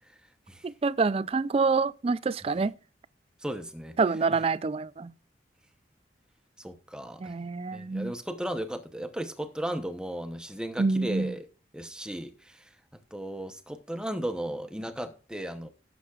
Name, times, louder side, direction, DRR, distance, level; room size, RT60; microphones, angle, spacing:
voice 1, 0.6-2.7 4.0-5.1 7.2-8.1 10.8-11.3, right 4 dB, 30° right, 0.3 m, -27 dB
voice 2, 3.4-4.0 6.6-7.4 7.7-11.5 11.7-12.7 13.1-15.7, right 1 dB, 5° right, 0.8 m, -35 dB
18.0 x 7.1 x 2.4 m
head